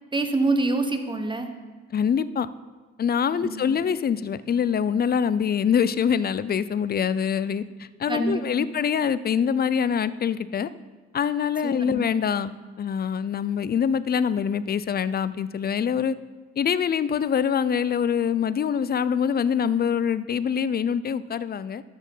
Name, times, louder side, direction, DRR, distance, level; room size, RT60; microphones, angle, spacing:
voice 1, 0.1-1.5 3.4-3.7 8.1-8.7 11.6-12.1, right 2 dB, 15° right, 6 dB, 1.1 m, -26 dB
voice 2, 1.9-2.5 3.0-10.7 11.1-16.2 16.6-21.8, left 7 dB, 30° left, 16 dB, 0.5 m, -24 dB
12.5 x 6.3 x 5.5 m, 1.3 s
cardioid pair, 90°, 30 cm